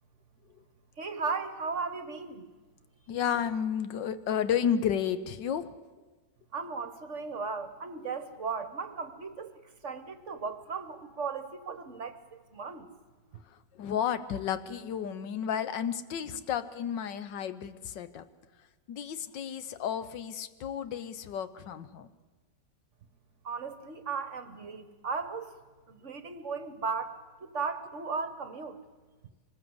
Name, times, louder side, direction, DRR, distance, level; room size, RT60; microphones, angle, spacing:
voice 1, 1.0-2.4 6.5-9.5 9.8-12.2 12.5-12.9 23.4-25.5 25.9-28.8, right 5 dB, 50° right, 10 dB, 1.2 m, -36 dB
voice 2, 3.1-5.7 13.8-18.2 18.9-22.1, left 8 dB, 80° left, 13 dB, 1.5 m, -32 dB
24.0 x 19.5 x 7.9 m, 1.3 s
omnidirectional pair, 1.9 m